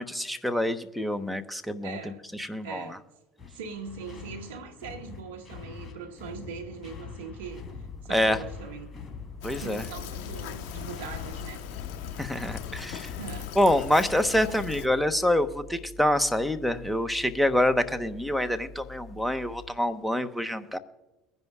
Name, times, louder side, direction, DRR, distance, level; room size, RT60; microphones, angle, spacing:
voice 1, 0.0-2.0 2.4-2.9 8.1-8.4 9.4-9.8 12.2-13.1 13.6-20.8, left 1 dB, ahead, 1.1 m, -26 dB
voice 2, 1.8-2.2 2.6-3.0 3.5-7.6 8.0-8.9 9.5-11.6 13.2-13.6, right 5 dB, 85° right, 1.3 m, -41 dB
sound 1, 3.4-14.1, left 6 dB, 25° left, 3.4 m, -44 dB
sound 2, 7.4-19.7, left 3 dB, 15° right, 1.2 m, -47 dB
Fill (with liquid), 9.4-14.9, left 10 dB, 70° left, 1.1 m, -39 dB
22.5 x 10.5 x 2.4 m
hypercardioid pair, 75°, 0 cm